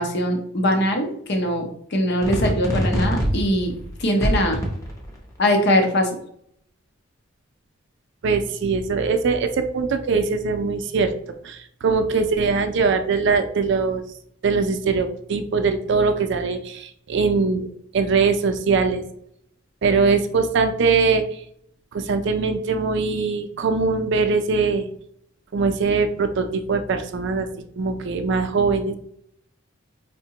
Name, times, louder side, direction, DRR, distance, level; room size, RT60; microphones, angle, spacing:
voice 1, 0.0-3.7 4.0-4.6 5.4-6.2, equal, 55° left, 3 dB, 0.7 m, -21 dB
sound 1, 2.2-5.2, equal, 15° left, 0.6 m, -23 dB
voice 2, 8.2-11.1 11.4-14.0 14.4-17.7 17.9-19.0 19.8-21.4 21.9-24.9 25.5-27.5 27.8-28.9, right 4 dB, 60° right, 7 dB, 0.4 m, -21 dB
4.5 x 2.1 x 2.8 m, 0.68 s
head